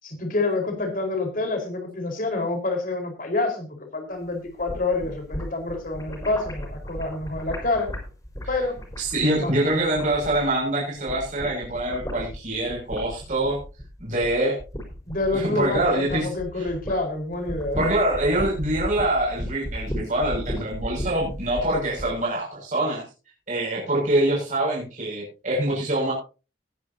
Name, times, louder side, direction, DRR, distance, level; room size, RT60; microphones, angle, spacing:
voice 1, 0.0-7.9 8.5-8.8 9.4-9.7 15.0-17.8, left 2 dB, 50° left, 3 dB, 4.7 m, -27 dB
sound 1, 4.5-10.7 11.0-17.0 17.3-22.1, equal, 20° left, 4.8 m, -35 dB
voice 2, 9.0-13.6 14.0-14.6 15.3-16.3 16.6-16.7 17.8-23.0 23.5-26.1, right 1 dB, 45° right, -4 dB, 6.7 m, -24 dB
20.0 x 10.5 x 2.9 m, 0.33 s
head